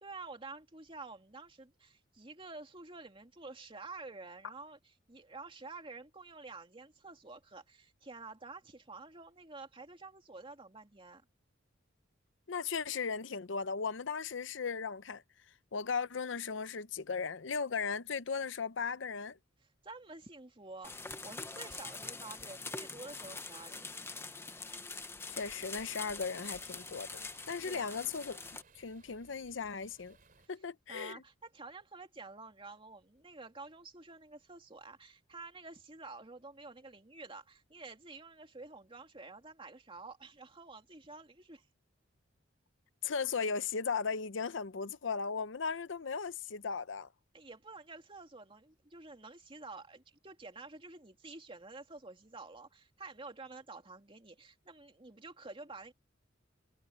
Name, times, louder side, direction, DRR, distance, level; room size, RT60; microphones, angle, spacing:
voice 1, 0.0-11.2 19.8-23.9 27.6-28.1 30.9-41.7 47.3-55.9, right 3 dB, 25° right, 2.6 m, -50 dB
voice 2, 12.5-15.2 15.7-19.4 25.3-28.4 28.8-30.2 30.5-31.2 43.0-47.1, left 5 dB, 70° left, 0.7 m, -37 dB
sound 1, 20.8-28.6, left 3 dB, 15° left, 0.9 m, -44 dB
sound 2, 25.3-30.5, right 3 dB, 45° right, 3.5 m, -63 dB
head